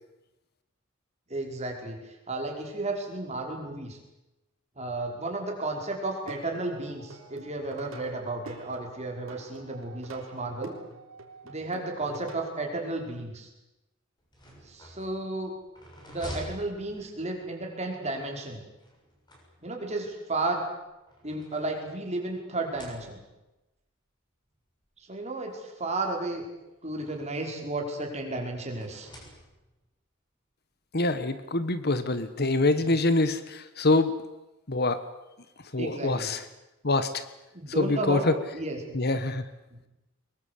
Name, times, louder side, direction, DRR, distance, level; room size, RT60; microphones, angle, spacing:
voice 1, 1.3-4.0 4.8-10.7 11.4-13.5 14.7-15.5 16.1-18.6 19.6-20.6 21.2-23.2 25.1-26.4 26.8-29.1 32.8-32.9 35.8-36.3 37.5-38.3 38.5-39.0 39.7-39.8, right 2 dB, 35° right, 1 dB, 5.4 m, -33 dB
Plucked string instrument, 6.1-12.5, right 2 dB, 80° right, 3.8 m, -47 dB
sound 1, 14.2-17.5 18.8-20.0 20.8-22.2 22.6-23.5 24.4-24.5 24.9-25.0 26.1-27.5 28.7-29.9, equal, 20° left, 6.9 m, -47 dB
voice 2, 30.9-34.2 34.7-35.0 35.7-36.4 36.8-37.2 37.8-38.3 38.9-39.4, left 2 dB, 50° left, 12 dB, 1.4 m, -25 dB
23.5 x 21.5 x 8.5 m, 1.0 s
head